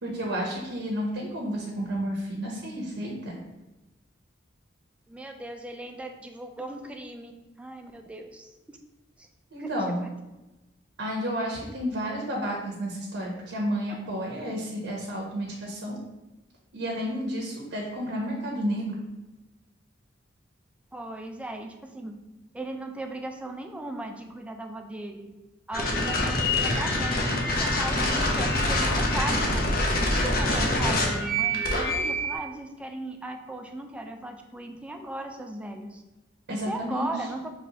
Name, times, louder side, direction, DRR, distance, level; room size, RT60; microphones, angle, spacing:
voice 1, 0.0-3.4 9.5-10.0 11.0-16.0 16.7-18.9 36.5-37.1, equal, 75° right, -2 dB, 0.8 m, -31 dB
voice 2, 5.1-7.3 7.6-8.8 9.6-9.7 10.0-10.1 20.9-22.1 22.5-25.3 25.7-29.7 30.1-36.0 36.5-37.5, right 1 dB, 5° right, 4 dB, 0.3 m, -37 dB
sound 1, 25.7-32.4, left 1 dB, 55° left, 0.7 m, -25 dB
5.3 x 3.0 x 2.8 m, 1.0 s
head